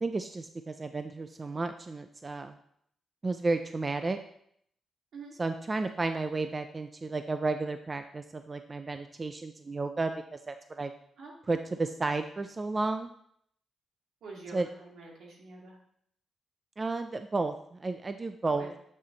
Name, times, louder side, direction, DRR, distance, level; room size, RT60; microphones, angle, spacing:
voice 1, 0.0-2.6 3.2-4.2 5.4-10.9 11.5-13.1 14.5-14.7 16.8-18.7, right 3 dB, 20° right, 8 dB, 0.4 m, -32 dB
voice 2, 14.2-15.8 18.5-18.7, right 3 dB, 70° right, -1 dB, 2.4 m, -46 dB
9.6 x 7.5 x 3.9 m, 0.69 s
wide cardioid pair, 180°, 0 cm